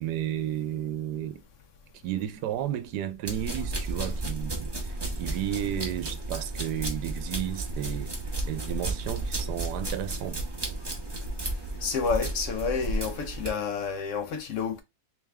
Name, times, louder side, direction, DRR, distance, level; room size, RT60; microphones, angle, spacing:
voice 1, 0.0-1.4 2.0-8.1 8.5-10.4, right 11 dB, 90° right, 1.2 m, -33 dB
sound 1, 3.3-13.5, right 2 dB, 20° right, 0.7 m, -33 dB
voice 2, 11.8-14.8, left 5 dB, 65° left, 0.8 m, -29 dB
3.5 x 3.4 x 3.2 m
omnidirectional pair, 1.7 m